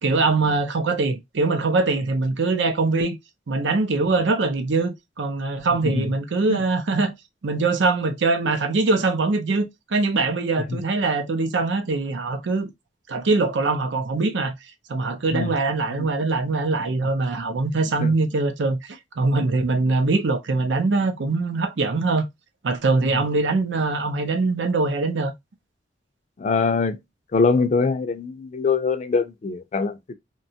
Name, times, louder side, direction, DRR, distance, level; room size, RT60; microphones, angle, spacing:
voice 1, 0.0-3.2 3.5-7.1 7.4-12.7 13.1-14.5 14.9-22.3 22.6-25.3, right 3 dB, 85° right, 0.6 m, -22 dB
voice 2, 5.8-6.1 6.5-6.6 10.7-10.8 15.3-15.5 15.9-16.1 18.0-18.1 23.1-23.2 26.4-27.0 27.3-30.0, left 4 dB, 40° left, 0.3 m, -23 dB
2.8 x 2.2 x 2.6 m
head